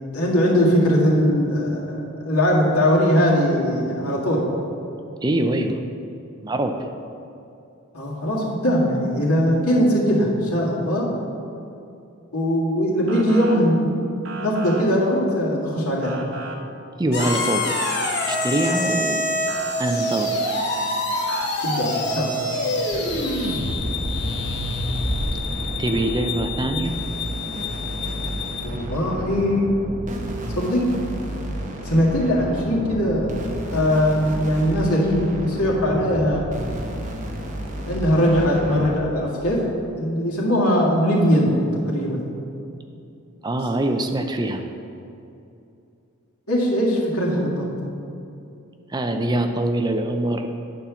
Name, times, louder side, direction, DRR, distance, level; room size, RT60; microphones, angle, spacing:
voice 1, 0.1-4.5 7.9-11.1 12.3-14.0 14.4-16.2 21.6-22.5 28.6-29.7 30.5-30.9 31.8-33.3 33.7-36.5 37.9-39.7 39.9-41.6 41.9-42.2 46.5-47.7, equal, 90° left, -4 dB, 1.9 m, -20 dB
voice 2, 5.2-5.8 6.4-6.8 17.0-17.7 18.3-19.2 19.8-20.4 25.8-26.9 43.4-44.6 48.9-50.5, right 1 dB, 20° right, 6 dB, 0.4 m, -23 dB
Motor vehicle (road) / Siren, 13.1-13.6 14.2-14.8 16.0-16.6 17.2-18.1 19.5-19.7 21.3-21.5, right 3 dB, 65° right, 0.9 m, -34 dB
sound 1, 17.1-28.6, left 1 dB, 50° left, 1.3 m, -26 dB
sound 2, 22.9-39.0, right 1 dB, 35° right, 0.9 m, -32 dB
9.2 x 4.3 x 6.9 m, 2.6 s
head